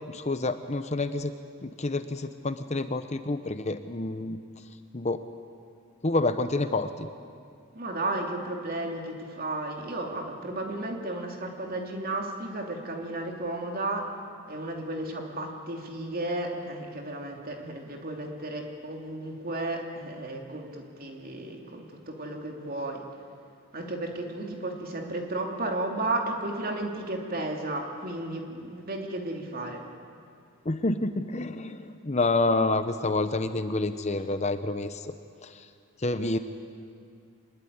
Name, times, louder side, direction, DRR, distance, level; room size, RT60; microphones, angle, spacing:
voice 1, 0.1-1.3 1.6-4.4 4.9-5.2 6.0-7.1 30.6-35.1 35.4-35.7 36.0-36.4, left 2 dB, 30° left, 9 dB, 0.8 m, -28 dB
voice 2, 7.7-14.1 14.5-23.1 23.7-29.9, right 2 dB, 40° right, 2 dB, 3.0 m, -33 dB
25.0 x 21.0 x 9.6 m, 2.4 s
head